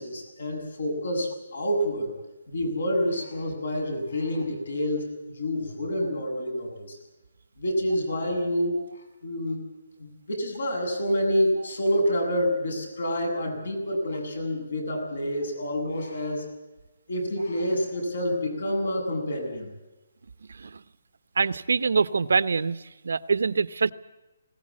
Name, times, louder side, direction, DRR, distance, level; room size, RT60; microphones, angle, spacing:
voice 1, 0.0-2.1 2.5-7.0 7.6-8.8 9.2-9.7 10.0-16.5 17.1-19.7, equal, 70° left, 4 dB, 7.9 m, -28 dB
voice 2, 20.5-20.8 21.4-22.8 23.0-23.9, right 5 dB, 75° right, 14 dB, 0.9 m, -24 dB
20.5 x 18.0 x 8.6 m, 1.0 s
hypercardioid pair, 175°, 0 cm